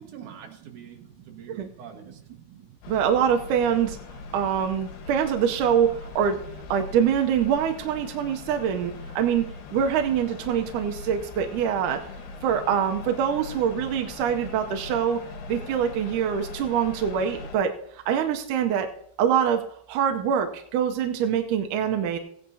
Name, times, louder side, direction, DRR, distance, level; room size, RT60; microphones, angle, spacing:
voice 1, 0.0-2.2, right 7 dB, 60° right, 2 dB, 2.6 m, -45 dB
sound 1, 2.8-17.6, left 4 dB, 80° left, 3.3 m, -41 dB
voice 2, 2.9-4.0 4.3-6.4 6.7-12.0 12.4-15.2 15.5-18.9 19.2-19.6 19.9-22.2, right 8 dB, 85° right, 4 dB, 1.8 m, -24 dB
16.5 x 10.0 x 2.8 m, 0.68 s
omnidirectional pair, 4.5 m